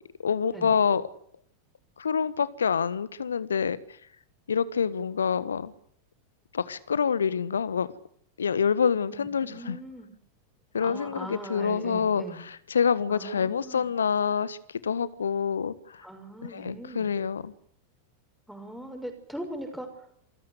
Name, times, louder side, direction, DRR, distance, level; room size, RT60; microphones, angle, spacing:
voice 1, 0.2-1.1 2.0-3.8 4.5-5.7 6.5-7.9 8.4-9.8 10.7-16.1 16.4-17.5, left 6 dB, 70° left, 1.5 m, -27 dB
voice 2, 9.1-10.1 10.8-12.4 13.1-13.9 16.0-17.1 18.5-19.9, right 1 dB, ahead, 6.2 m, -40 dB
27.5 x 16.0 x 8.3 m
figure-of-eight pair, 90°, 0 cm